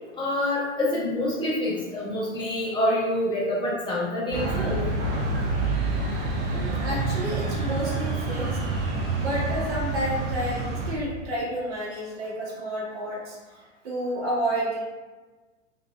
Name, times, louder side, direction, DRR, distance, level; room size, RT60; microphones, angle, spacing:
voice 1, 0.2-4.8, left 1 dB, 10° left, -7 dB, 0.6 m, -26 dB
sound 1, 4.3-10.9, right 3 dB, 30° right, 0.6 m, -27 dB
voice 2, 6.5-8.5 9.1-13.4 13.8-14.8, right 1 dB, 60° right, -5 dB, 1.2 m, -30 dB
2.8 x 2.5 x 2.4 m, 1.2 s
figure-of-eight pair, 95°, 39 cm